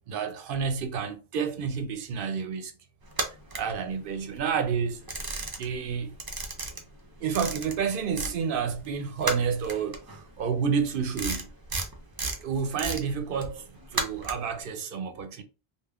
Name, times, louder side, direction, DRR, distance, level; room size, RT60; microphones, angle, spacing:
voice 1, 0.1-2.7 3.5-5.0 5.6-6.2 7.2-11.5 12.4-13.7 13.9-15.4, right 6 dB, 65° right, 0.7 m, -29 dB
sound 1, 3.1-4.4 4.7-5.9 6.1-8.4 8.7-14.6, right 2 dB, 35° right, 0.4 m, -34 dB
3.4 x 2.3 x 2.3 m
omnidirectional pair, 1.1 m